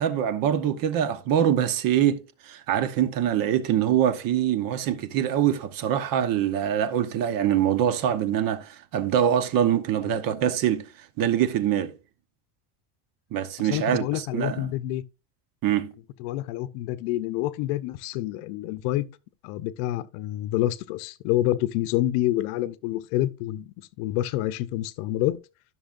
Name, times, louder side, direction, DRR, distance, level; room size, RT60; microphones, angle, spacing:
voice 1, 0.0-10.9 11.2-11.9 13.3-14.7 15.6-15.9, right 10 dB, 45° right, 0.9 m, -24 dB
voice 2, 13.6-15.0 16.2-19.1 19.4-25.4, left 15 dB, 70° left, 0.8 m, -28 dB
14.0 x 6.2 x 2.5 m
cardioid pair, 145°, 49 cm